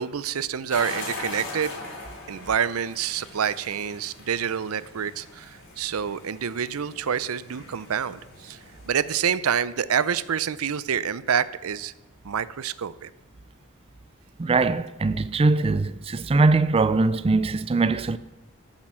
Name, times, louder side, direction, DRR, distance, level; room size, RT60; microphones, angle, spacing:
voice 1, 0.0-1.8 2.3-8.6 8.8-11.9 12.2-13.1, right 8 dB, 85° right, 0.6 m, -27 dB
sound 1, 0.7-8.9, left 2 dB, 60° left, 3.2 m, -41 dB
voice 2, 14.4-18.2, right 3 dB, 25° right, 0.4 m, -21 dB
13.0 x 7.5 x 6.1 m
head